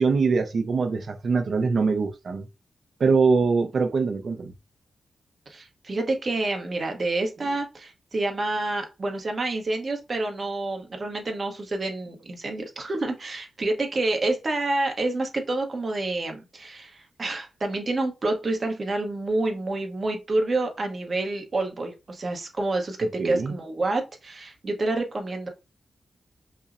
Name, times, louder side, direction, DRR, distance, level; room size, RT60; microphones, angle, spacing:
voice 1, 0.0-2.5 3.0-4.5 23.2-23.5, right 4 dB, 55° right, 0.5 m, -23 dB
voice 2, 5.5-25.5, right 2 dB, 35° right, 0.9 m, -28 dB
5.4 x 2.0 x 2.5 m
wide cardioid pair, 145°, 0 cm